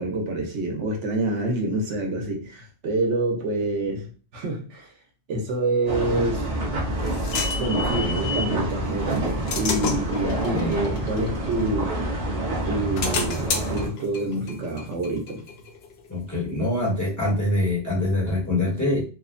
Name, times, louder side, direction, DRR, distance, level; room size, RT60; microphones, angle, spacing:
voice 1, 0.0-4.9 5.3-6.5 7.6-12.0 12.6-15.4, right 2 dB, 85° right, 1.1 m, -27 dB
sound 1, 5.9-13.9, right 1 dB, 45° right, 0.9 m, -28 dB
sound 2, 6.4-8.6 9.1-12.2 12.6-16.1, left 5 dB, 70° left, 0.8 m, -32 dB
voice 2, 10.2-10.8 16.1-19.0, left 1 dB, 15° left, 0.9 m, -25 dB
3.0 x 2.1 x 2.5 m
omnidirectional pair, 1.2 m